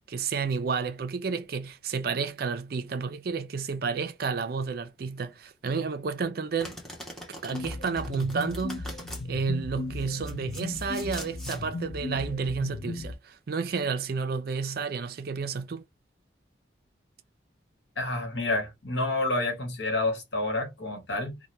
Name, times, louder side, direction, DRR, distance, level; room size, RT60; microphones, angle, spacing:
voice 1, 0.0-6.8 7.4-9.0 9.2-15.8, right 5 dB, 50° right, 0.4 m, -31 dB
Domestic sounds home sounds, 6.6-9.2 10.0-11.6, equal, 5° left, 0.8 m, -42 dB
sound 1, 7.5-13.1, left 2 dB, 45° left, 0.4 m, -36 dB
voice 2, 18.0-21.4, left 2 dB, 60° left, 1.2 m, -29 dB
2.7 x 2.2 x 3.2 m
head